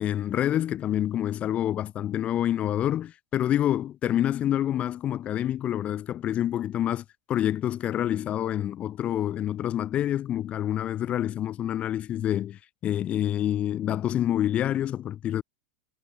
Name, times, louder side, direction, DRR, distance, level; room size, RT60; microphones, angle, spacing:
voice 1, 0.0-15.4, left 11 dB, 25° left, 1.0 m, -27 dB
supercardioid pair, 150°, 5 cm